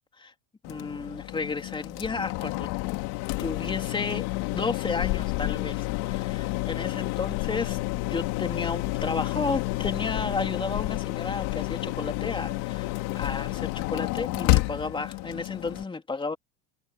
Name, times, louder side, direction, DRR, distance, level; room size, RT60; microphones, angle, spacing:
sound 1, 0.6-15.8, left 21 dB, 65° left, 3.3 m, -30 dB
voice 1, 0.6-2.7 3.4-16.4, left 4 dB, 10° left, 3.4 m, -33 dB
supercardioid pair, 140°, 40 cm